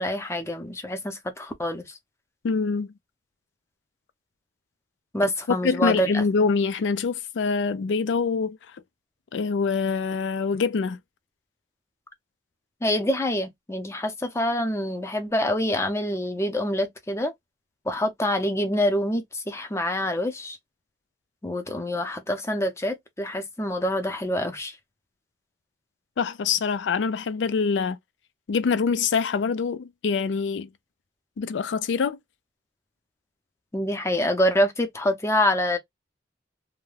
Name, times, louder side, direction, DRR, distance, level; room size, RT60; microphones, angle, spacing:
voice 1, 0.0-2.0 5.1-6.2 12.8-17.3 17.9-20.6 21.4-24.8 33.7-35.8, left 1 dB, 15° left, 0.6 m, -26 dB
voice 2, 2.4-2.9 5.6-8.6 9.3-11.0 26.2-28.0 28.5-30.7 31.4-32.2, left 5 dB, 75° left, 0.4 m, -25 dB
2.4 x 2.1 x 3.1 m
head